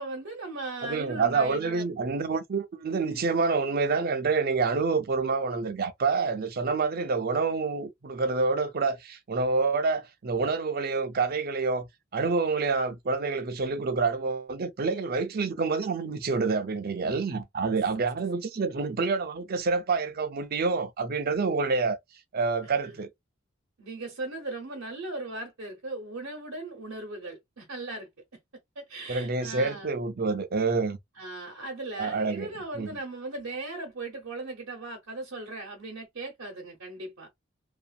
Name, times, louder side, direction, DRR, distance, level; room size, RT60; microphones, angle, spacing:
voice 1, 0.0-1.9 22.8-22.9 23.8-28.1 28.8-30.0 31.2-37.3, right 2 dB, 85° right, 0.9 m, -38 dB
voice 2, 0.8-11.9 12.1-22.0 22.3-23.1 29.1-31.0 32.0-32.9, right 4 dB, 50° right, 0.5 m, -27 dB
2.6 x 2.4 x 2.3 m
head